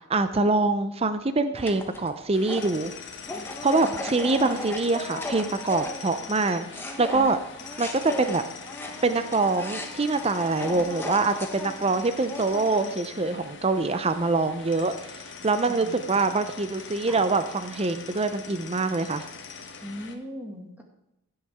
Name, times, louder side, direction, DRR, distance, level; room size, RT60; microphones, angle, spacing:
voice 1, 0.1-2.9 3.6-6.7 7.0-7.4 7.8-8.4 9.0-15.1 15.4-19.3, right 3 dB, 30° right, 10 dB, 0.6 m, -24 dB
sound 1, 1.5-6.4 6.7-13.1, left 1 dB, 10° left, 1.0 m, -37 dB
sound 2, 2.3-20.2, left 5 dB, 55° left, 1.1 m, -42 dB
voice 2, 3.8-4.7 15.7-16.2 17.0-17.2 19.8-20.8, equal, 10° right, 1 dB, 1.9 m, -40 dB
15.5 x 7.9 x 3.6 m, 0.87 s
head